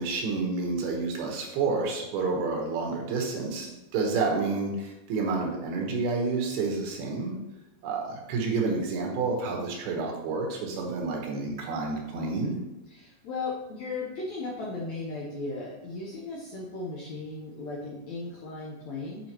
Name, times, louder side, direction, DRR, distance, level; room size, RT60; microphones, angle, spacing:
voice 1, 0.0-7.3 7.8-12.6, right 4 dB, 85° right, 1 dB, 3.1 m, -29 dB
voice 2, 12.9-19.3, left 3 dB, 70° left, -5 dB, 1.7 m, -36 dB
8.4 x 5.0 x 3.0 m, 0.96 s
omnidirectional pair, 4.4 m